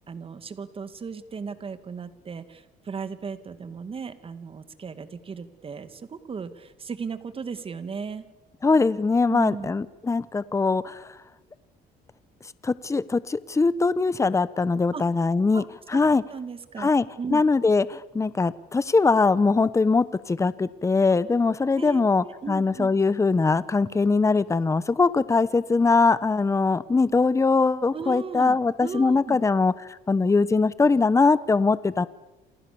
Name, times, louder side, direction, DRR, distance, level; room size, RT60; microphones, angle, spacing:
voice 1, 0.1-8.2 9.3-9.7 14.9-15.0 15.5-16.0 16.3-17.4 21.7-22.9 27.9-29.4, right 5 dB, 35° right, 11 dB, 2.5 m, -36 dB
voice 2, 8.6-11.1 12.6-15.6 15.9-16.2 16.8-17.0 17.3-29.7 30.1-32.1, left 4 dB, 15° left, 17 dB, 1.0 m, -22 dB
28.5 x 28.0 x 7.1 m, 0.98 s
cardioid pair, 110°, 17 cm